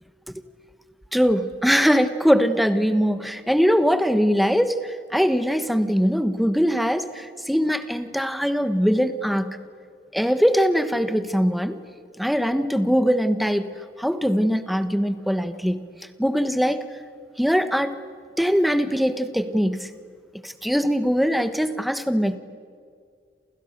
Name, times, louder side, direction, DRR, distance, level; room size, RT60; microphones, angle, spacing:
voice 1, 1.1-9.6 10.1-11.8 12.2-13.7 14.0-15.8 16.2-16.9 17.4-17.9 18.4-19.9 20.4-22.4, equal, ahead, 11 dB, 1.2 m, -21 dB
29.0 x 28.5 x 6.6 m, 2.2 s
head